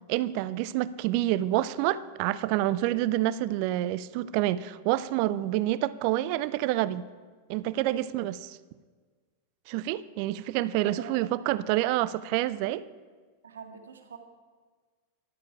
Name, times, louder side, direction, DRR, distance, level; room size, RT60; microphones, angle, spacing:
voice 1, 0.1-7.1 7.5-8.6 9.7-12.8, right 14 dB, 45° right, 17 dB, 0.4 m, -28 dB
voice 2, 10.8-11.3 13.4-14.2, right 6 dB, 70° right, 4 dB, 1.7 m, -44 dB
13.5 x 12.0 x 4.8 m, 1.5 s
figure-of-eight pair, 90°, 0 cm